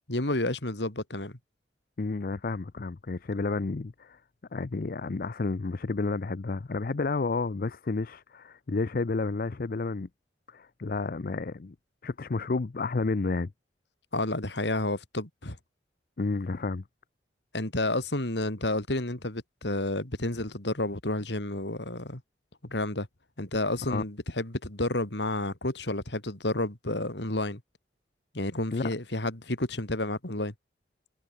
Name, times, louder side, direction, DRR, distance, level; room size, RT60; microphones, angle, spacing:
voice 1, 0.1-1.4 14.1-15.6 17.5-22.2 22.6-23.1 23.4-27.6 28.3-30.5, left 2 dB, 70° left, 3.2 m, -30 dB
voice 2, 2.0-4.2 4.5-10.1 10.5-11.7 12.0-13.5 16.2-16.8 23.8-24.0 28.7-28.9, left 3 dB, 50° left, 0.6 m, -31 dB
head